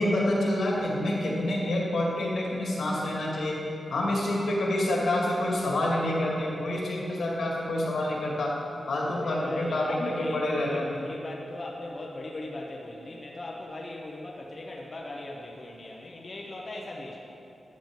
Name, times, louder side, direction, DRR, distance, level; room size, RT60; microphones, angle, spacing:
voice 1, 0.0-3.6 3.9-8.5 8.9-10.8, left 1 dB, 85° left, -3 dB, 2.2 m, -27 dB
voice 2, 9.1-17.2, left 2 dB, 40° left, -2 dB, 0.9 m, -39 dB
12.5 x 8.9 x 3.8 m, 2.9 s
wide cardioid pair, 105°, 0 cm